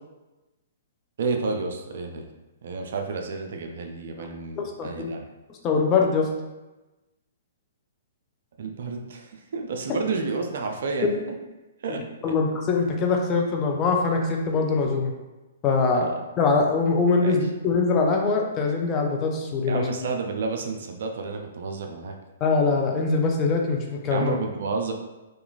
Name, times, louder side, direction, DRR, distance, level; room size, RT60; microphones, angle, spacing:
voice 1, 1.2-2.3 2.6-5.2 8.6-11.1 11.8-12.3 15.9-16.2 17.2-17.4 19.7-22.2 24.1-24.9, right 4 dB, 60° right, 4 dB, 0.4 m, -30 dB
voice 2, 4.6-5.1 5.6-6.3 12.2-15.1 15.6-16.1 16.4-19.8 22.4-24.3, left 4 dB, 25° left, 1 dB, 0.4 m, -23 dB
2.9 x 2.4 x 2.4 m, 1.1 s
hypercardioid pair, 125°, 0 cm